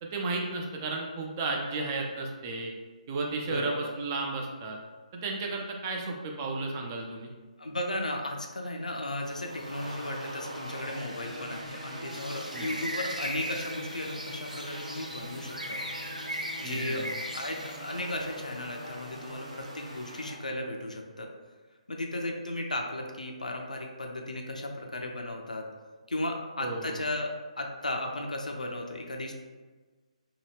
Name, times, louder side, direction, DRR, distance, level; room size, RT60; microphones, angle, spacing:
voice 1, 0.0-2.7 3.1-4.8 5.1-7.3 12.5-12.7 16.6-17.1 26.6-27.0, right 3 dB, 25° right, 0 dB, 0.4 m, -33 dB
voice 2, 3.4-3.9 7.6-15.8 16.6-17.1 17.3-21.3 21.9-25.6 26.1-27.3 27.6-29.3, left 1 dB, 75° left, 2 dB, 0.5 m, -35 dB
sound 1, 9.2-20.4, equal, 70° right, 0.9 m, -43 dB
sound 2, 12.1-17.8, right 1 dB, 90° right, 0.5 m, -38 dB
2.8 x 2.2 x 3.2 m, 1.3 s
figure-of-eight pair, 140°, 4 cm